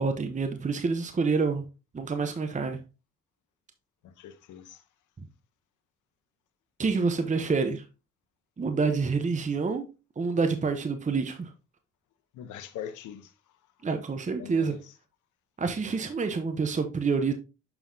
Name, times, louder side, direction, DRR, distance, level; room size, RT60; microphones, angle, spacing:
voice 1, 0.0-1.6 1.9-2.8 5.2-5.3 6.8-7.8 8.6-9.8 10.2-11.5 13.8-14.8 15.6-17.3, right 4 dB, 25° right, 0.8 m, -27 dB
voice 2, 4.0-4.8 12.3-13.3 14.4-14.8, left 9 dB, 80° left, 0.9 m, -42 dB
7.0 x 5.6 x 2.7 m
cardioid pair, 90°, 30 cm